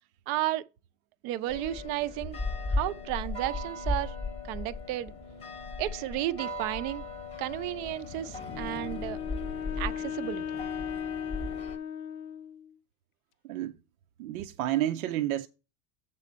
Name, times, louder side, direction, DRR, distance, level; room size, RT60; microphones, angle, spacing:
voice 1, 0.3-0.6 1.2-2.4 2.8-4.1 4.5-5.1 5.8-7.0 7.4-9.2 9.8-10.6, right 15 dB, 45° right, 0.5 m, -33 dB
sound 1, 1.5-11.8, left 2 dB, 15° left, 0.8 m, -36 dB
Wind instrument woodwind instrument, 8.5-12.7, left 8 dB, 85° left, 0.8 m, -37 dB
voice 2, 13.4-13.7 14.2-15.5, right 13 dB, 85° right, 0.7 m, -30 dB
7.6 x 4.2 x 6.1 m
supercardioid pair, 155°, 41 cm